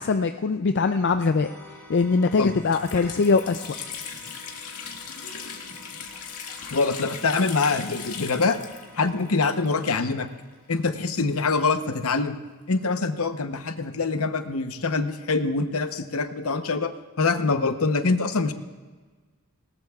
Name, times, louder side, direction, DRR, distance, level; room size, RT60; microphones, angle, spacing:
voice 1, 0.0-1.5 1.9-3.7, left 4 dB, 50° left, 8 dB, 0.4 m, -22 dB
sound 1, 1.4-10.9, left 1 dB, 10° left, 2.9 m, -50 dB
Water tap faucet, 2.0-2.1 2.4-10.2 10.4-10.5 11.3-12.9, left 6 dB, 85° left, 1.9 m, -39 dB
voice 2, 6.7-8.6 9.0-10.3 10.7-12.4 12.7-16.9 17.2-18.5, left 4 dB, 70° left, 9 dB, 0.9 m, -24 dB
19.0 x 19.0 x 2.4 m, 1.4 s
head